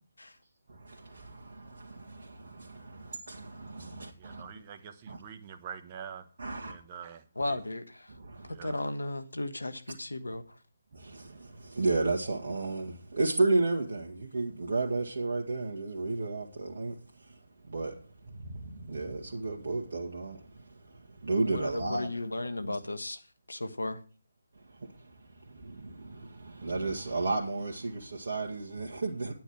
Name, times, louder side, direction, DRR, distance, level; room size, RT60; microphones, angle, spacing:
voice 1, 0.7-4.4 5.1-5.2 6.4-6.8 8.1-8.5 10.9-17.4 17.6-22.1 22.6-22.7 24.6-29.3, right 3 dB, 60° right, 1.7 m, -33 dB
voice 2, 4.2-6.2 6.7-7.6 8.5-8.7, right 7 dB, 30° right, 1.3 m, -45 dB
voice 3, 7.3-8.1 8.5-10.6 21.4-23.2 23.5-24.0, left 2 dB, 80° left, 1.3 m, -35 dB
10.5 x 9.1 x 4.7 m
figure-of-eight pair, 145°, 0 cm